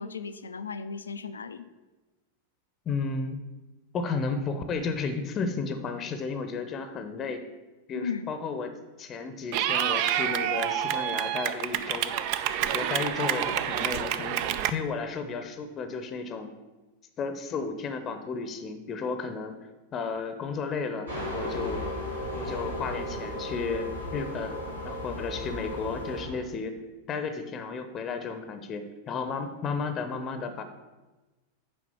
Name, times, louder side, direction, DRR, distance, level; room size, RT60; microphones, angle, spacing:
voice 1, 0.0-1.7 7.9-8.3, left 5 dB, 75° left, 12 dB, 0.5 m, -36 dB
voice 2, 2.9-3.4 3.9-7.4 7.9-8.7 9.0-12.1 12.6-14.4 14.7-16.5 17.2-19.6 19.9-21.8 22.3-26.8 27.1-30.6, left 4 dB, 30° left, 9 dB, 0.7 m, -33 dB
Clapping / Cheering, 9.5-14.7, right 11 dB, 45° right, 0.4 m, -28 dB
sound 1, 21.1-26.2, left 1 dB, 90° left, 1.3 m, -40 dB
sound 2, 21.1-26.4, equal, 90° right, 3.1 m, -36 dB
6.9 x 4.9 x 7.0 m, 1.2 s
figure-of-eight pair, 90°, 0 cm